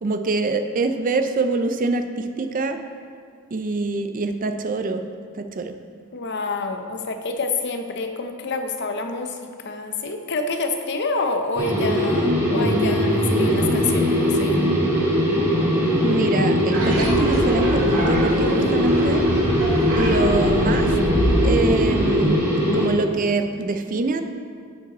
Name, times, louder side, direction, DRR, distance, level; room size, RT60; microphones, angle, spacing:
voice 1, 0.0-2.8 3.5-5.0 5.3-5.7 16.0-19.2 20.0-20.9 21.4-22.4 22.7-24.2, right 3 dB, 40° right, 7 dB, 0.4 m, -24 dB
voice 2, 6.1-14.6, left 3 dB, 50° left, 5 dB, 0.6 m, -28 dB
sound 1, 11.6-22.9, equal, 10° right, 1.7 m, -20 dB
sound 2, 16.7-21.8, equal, 75° right, 1.7 m, -25 dB
10.5 x 5.0 x 4.1 m, 2.2 s
head